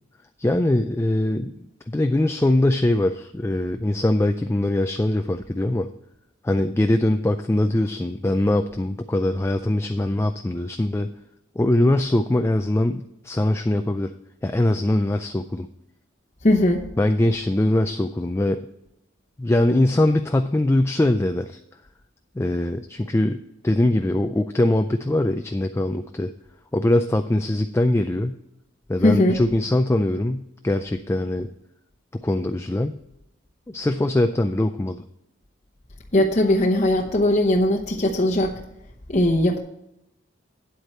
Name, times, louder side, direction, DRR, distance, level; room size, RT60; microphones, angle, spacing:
voice 1, 0.4-1.6 1.9-5.9 6.4-11.1 11.6-14.1 14.4-15.7 17.0-18.7 19.4-21.6 22.4-26.3 26.7-28.4 28.9-31.5 32.1-33.0 33.7-35.0, left 1 dB, 15° left, 7 dB, 0.3 m, -22 dB
voice 2, 16.4-16.8 29.0-29.4 36.1-38.6 39.1-39.6, left 1 dB, 35° left, -1 dB, 0.9 m, -19 dB
9.4 x 8.0 x 4.3 m, 0.84 s
head